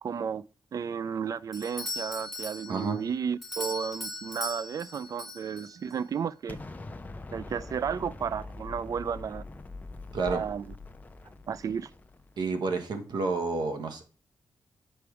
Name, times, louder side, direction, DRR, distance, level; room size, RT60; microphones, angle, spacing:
voice 1, 0.0-0.5 0.7-6.6 7.3-9.4 10.2-10.7 11.5-11.9, right 7 dB, 55° right, 0.3 m, -33 dB
Doorbell, 1.5-6.0, left 2 dB, ahead, 1.6 m, -39 dB
Explosion, 6.5-12.5, left 2 dB, 20° left, 0.6 m, -43 dB
voice 2, 12.4-14.1, right 4 dB, 80° right, 1.2 m, -30 dB
7.0 x 4.7 x 4.8 m
wide cardioid pair, 115°, 7 cm